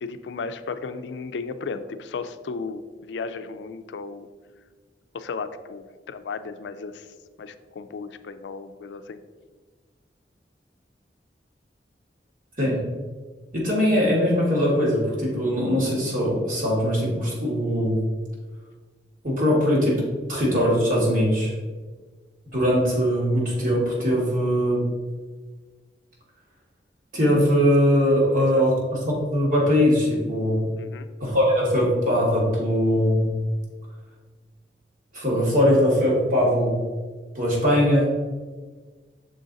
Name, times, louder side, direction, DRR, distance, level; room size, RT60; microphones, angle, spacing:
voice 1, 0.0-4.3 5.1-7.1 7.4-9.2 28.5-28.7 30.8-31.1, left 4 dB, 85° left, 11 dB, 0.4 m, -35 dB
voice 2, 13.5-18.0 19.2-20.0 20.3-21.5 22.5-24.8 27.1-28.8 29.1-30.6 31.2-33.4 35.1-36.7 37.3-38.1, equal, 50° right, -4 dB, 1.8 m, -21 dB
6.3 x 3.8 x 4.0 m, 1.4 s
head